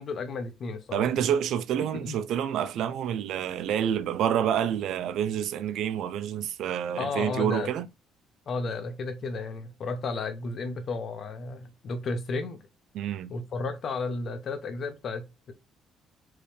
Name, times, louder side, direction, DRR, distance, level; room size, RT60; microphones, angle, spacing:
voice 1, 0.0-1.2 1.8-2.2 7.0-7.7 8.5-12.6 13.3-15.5, left 3 dB, 40° left, 1.0 m, -33 dB
voice 2, 0.9-7.9 12.9-13.3, right 9 dB, 65° right, 0.4 m, -28 dB
4.7 x 3.1 x 3.5 m
cardioid pair, 165°, 0 cm